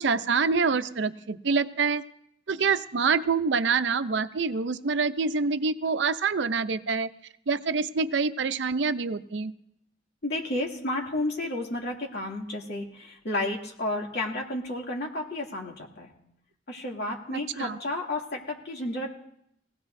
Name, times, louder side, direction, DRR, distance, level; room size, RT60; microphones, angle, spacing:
voice 1, 0.0-2.0 2.5-7.1 7.5-9.5 17.3-17.8, right 5 dB, 70° right, 11 dB, 0.6 m, -26 dB
voice 2, 10.2-16.1 16.7-19.1, left 1 dB, 65° left, -1 dB, 2.5 m, -32 dB
21.5 x 16.5 x 2.6 m, 0.75 s
head